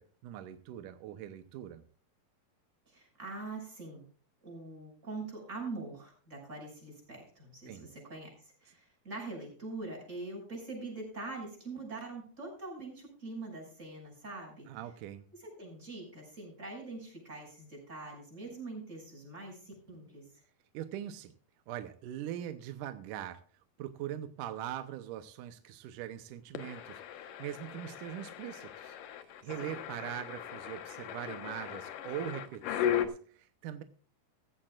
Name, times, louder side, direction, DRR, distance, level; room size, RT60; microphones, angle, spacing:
voice 1, 0.0-1.9 7.7-7.9 14.7-15.3 20.7-21.3 21.7-23.4 23.8-33.8, right 11 dB, 75° right, 9 dB, 2.2 m, -42 dB
voice 2, 2.9-4.0 4.4-14.7 15.3-20.3 29.4-29.8 30.0-30.1, right 3 dB, 20° right, 0 dB, 6.7 m, -44 dB
sound 1, 26.5-33.1, left 10 dB, 70° left, 2.7 m, -37 dB
16.0 x 15.5 x 2.4 m, 0.44 s
omnidirectional pair, 4.2 m